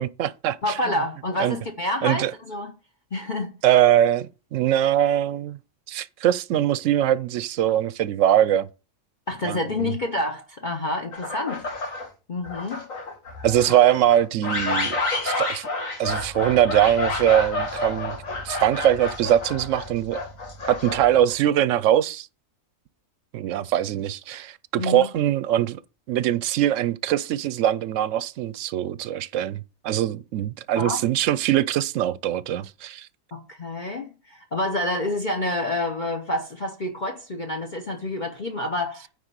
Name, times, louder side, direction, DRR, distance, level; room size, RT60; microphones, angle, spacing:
voice 1, 0.0-0.9 1.4-1.6 2.0-2.3 3.6-5.6 5.9-8.7 9.4-9.9 13.4-15.7 16.0-18.2 18.4-20.2 20.7-22.3 23.3-25.8 26.1-33.1, right 11 dB, 70° right, 0.9 m, -22 dB
voice 2, 0.6-2.7 3.1-3.5 9.3-11.7 12.3-12.8 24.8-25.1 30.8-31.0 33.3-39.1, left 1 dB, 40° left, 1.0 m, -28 dB
sound 1, 11.1-12.1 12.4-21.3, left 2 dB, 70° left, 2.1 m, -29 dB
9.7 x 3.6 x 6.7 m
omnidirectional pair, 1.4 m